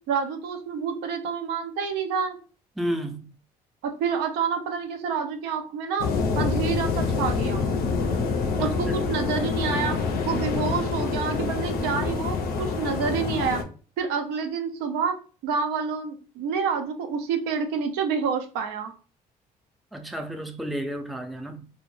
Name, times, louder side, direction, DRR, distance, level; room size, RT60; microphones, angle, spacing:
voice 1, 0.1-2.4 3.8-6.1 6.3-7.7 8.6-10.0 10.3-13.6 14.0-15.1 15.4-18.9, right 6 dB, 90° right, 0.4 m, -28 dB
voice 2, 2.8-3.3 8.6-9.0 19.9-21.7, right 1 dB, ahead, 0.4 m, -32 dB
sound 1, 6.0-13.6, left 4 dB, 65° left, 0.5 m, -26 dB
2.1 x 2.1 x 3.0 m
supercardioid pair, 75°, 17 cm